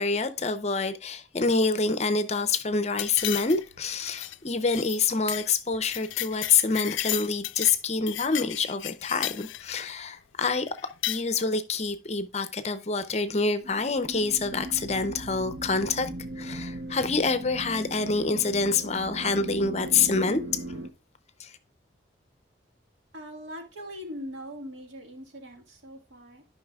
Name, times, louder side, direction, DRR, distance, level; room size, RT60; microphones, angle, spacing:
voice 1, 0.0-10.7 11.1-16.1 16.4-20.8 21.4-21.5, left 4 dB, 35° left, 0.6 m, -27 dB
sound 1, 3.0-3.8 4.1-4.4 4.7-5.0 5.3-5.5 5.7-7.8 8.1-9.9 10.8-11.2, left 15 dB, 85° left, 0.3 m, -33 dB
sound 2, 13.6-20.9, right 1 dB, 65° right, 0.7 m, -38 dB
voice 2, 23.1-26.4, equal, 90° right, 1.8 m, -41 dB
11.5 x 5.6 x 2.3 m
head